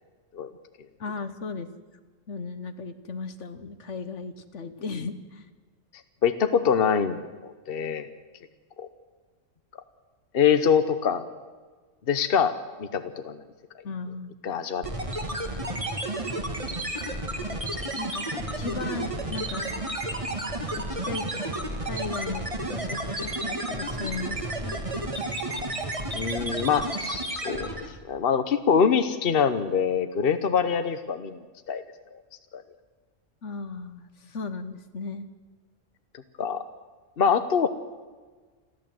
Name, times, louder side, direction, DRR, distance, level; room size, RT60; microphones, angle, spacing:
voice 1, 1.0-1.7 2.3-5.5 13.8-14.3 18.0-19.7 20.7-21.2 21.8-24.8 33.4-35.3, left 4 dB, 65° left, 10 dB, 1.5 m, -36 dB
voice 2, 6.2-8.1 8.8-8.9 10.3-11.2 12.1-12.5 12.8-13.4 14.4-14.8 26.1-31.4 31.7-31.8 32.5-32.6 36.4-36.6 37.2-37.7, left 7 dB, 50° left, 10 dB, 1.1 m, -24 dB
sound 1, 14.8-28.0, right 1 dB, 25° right, 2.0 m, -31 dB
29.0 x 12.0 x 7.7 m, 1.4 s
omnidirectional pair, 1.4 m